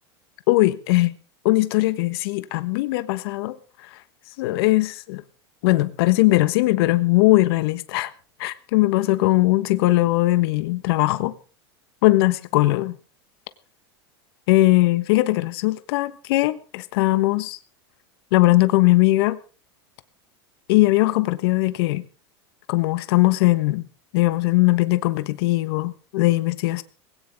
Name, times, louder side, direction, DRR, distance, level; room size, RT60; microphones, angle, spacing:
voice 1, 0.5-1.1 1.4-3.5 3.9-4.0 4.4-5.2 5.6-8.1 8.4-11.3 12.0-13.0 14.5-17.6 18.3-19.4 20.7-22.0 22.7-23.8 24.1-26.8, left 19 dB, 65° left, 1.3 m, -20 dB
20.0 x 17.5 x 3.6 m
hypercardioid pair, 105°, 14 cm